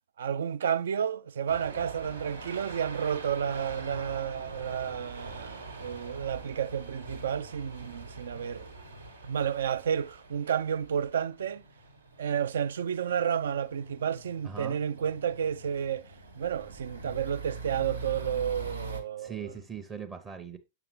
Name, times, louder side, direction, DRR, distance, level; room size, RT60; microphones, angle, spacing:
voice 1, 0.2-8.7 9.3-11.6 12.2-16.1 16.3-19.5, right 8 dB, 60° right, 0.4 m, -31 dB
sound 1, 1.5-19.0, right 3 dB, 80° right, 1.3 m, -44 dB
voice 2, 14.4-14.8 19.2-20.6, right 7 dB, 20° right, 0.7 m, -40 dB
6.9 x 5.8 x 3.1 m
figure-of-eight pair, 100°, 0 cm